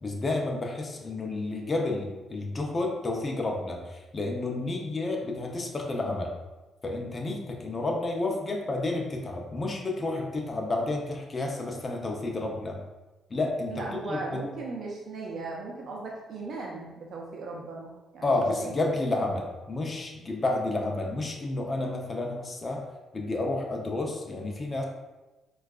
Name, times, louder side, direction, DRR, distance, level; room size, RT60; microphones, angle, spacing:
voice 1, 0.0-6.3 6.8-12.8 13.3-14.4 18.2-22.9 23.1-24.8, left 2 dB, 30° left, 0 dB, 0.5 m, -30 dB
voice 2, 13.7-18.7, right 3 dB, 60° right, -1 dB, 0.5 m, -37 dB
4.4 x 2.3 x 2.3 m, 1.1 s
cardioid pair, 90°, 0 cm